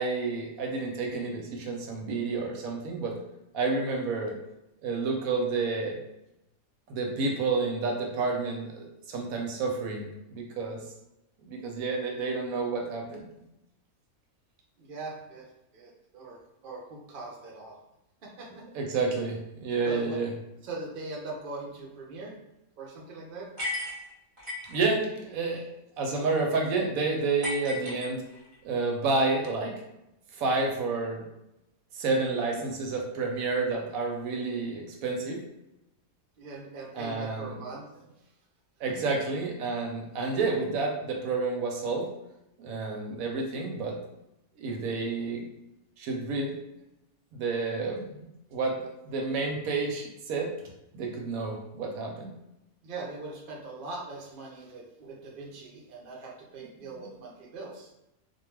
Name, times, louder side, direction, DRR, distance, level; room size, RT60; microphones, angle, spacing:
voice 1, 0.0-3.2 3.5-4.4 4.8-6.0 6.9-10.8 11.5-13.2 18.6-20.3 24.7-25.7 26.0-28.2 28.6-29.8 30.4-31.2 31.9-35.4 36.9-37.5 38.8-42.1 42.6-44.0 44.6-45.5 46.0-46.6 47.3-50.5 50.9-52.3, right 3 dB, 80° right, 1 dB, 1.0 m, -30 dB
voice 2, 14.8-15.5 15.7-17.8 18.2-18.6 19.8-20.2 20.6-22.3 22.8-23.5 36.4-37.9 52.8-57.9, right 3 dB, 50° right, -2 dB, 0.7 m, -41 dB
sound 1, 23.6-24.8 27.4-28.6, left 1 dB, 25° right, 0.8 m, -35 dB
2.5 x 2.2 x 3.1 m, 0.88 s
omnidirectional pair, 1.5 m